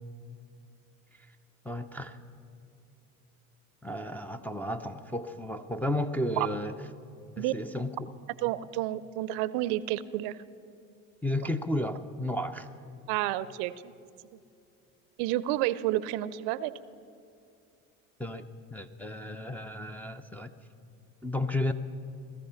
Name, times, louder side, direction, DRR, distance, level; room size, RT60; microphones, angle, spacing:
voice 1, 1.6-2.2 3.8-6.8 7.4-8.1 11.2-12.7 18.2-20.5 21.2-21.7, left 1 dB, 5° left, 3 dB, 0.6 m, -33 dB
voice 2, 8.4-10.4 13.1-13.9 15.2-16.7, right 15 dB, 65° right, 18 dB, 0.6 m, -30 dB
18.0 x 13.5 x 5.7 m, 2.5 s
hypercardioid pair, 80°, 42 cm